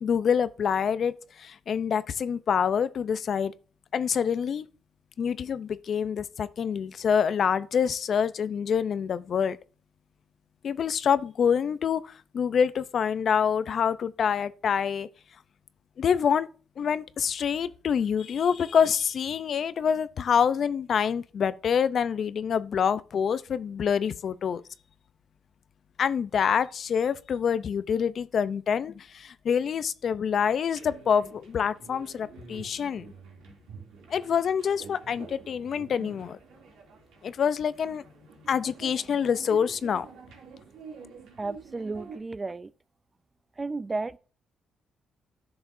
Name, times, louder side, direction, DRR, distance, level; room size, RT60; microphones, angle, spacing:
voice 1, 0.0-3.5 3.9-4.6 5.2-9.6 10.6-15.1 16.0-16.5 16.8-24.6 26.0-33.1 34.1-36.4 37.2-38.0 38.5-40.1, left 7 dB, 55° left, 0.5 m, -26 dB
sound 1, 30.7-42.2, right 5 dB, 85° right, 2.6 m, -47 dB
voice 2, 41.4-42.7 43.6-44.2, right 3 dB, 25° right, 0.4 m, -33 dB
11.0 x 6.8 x 2.6 m
cardioid pair, 90°, 0 cm